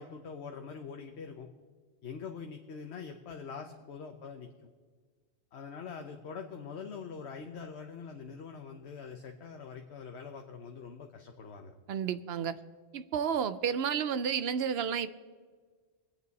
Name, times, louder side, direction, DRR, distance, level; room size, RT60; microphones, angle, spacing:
voice 1, 0.0-1.5 2.0-4.7 5.5-11.7, left 5 dB, 90° left, 1.2 m, -44 dB
voice 2, 11.9-12.6 12.9-15.1, right 7 dB, 70° right, 0.9 m, -31 dB
24.0 x 8.8 x 4.1 m
omnidirectional pair, 1.1 m